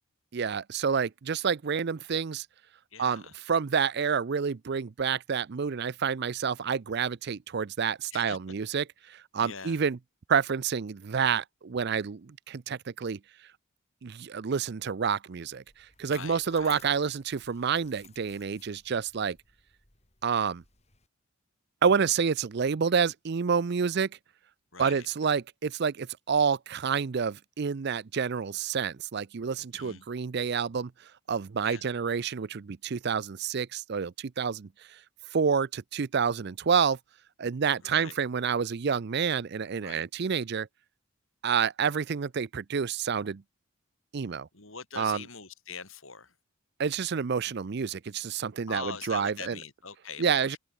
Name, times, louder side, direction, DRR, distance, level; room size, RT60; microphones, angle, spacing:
voice 1, 0.3-2.5 3.0-10.0 10.3-13.2 14.0-15.6 16.0-19.4 20.2-20.6 21.8-24.1 24.8-30.9 31.3-34.7 35.3-37.0 37.4-40.7 41.4-43.4 44.1-44.5 45.0-45.2 46.8-49.6 50.2-50.6, right 6 dB, 50° right, 0.5 m, -28 dB
voice 2, 2.9-3.3 8.1-8.4 9.4-9.8 16.0-16.8 24.7-25.1 29.7-30.1 31.6-31.9 37.8-38.2 39.8-40.0 44.5-46.3 48.7-50.6, left 5 dB, 70° left, 6.5 m, -42 dB
sound 1, 15.7-21.1, left 8 dB, 30° left, 5.4 m, -57 dB
head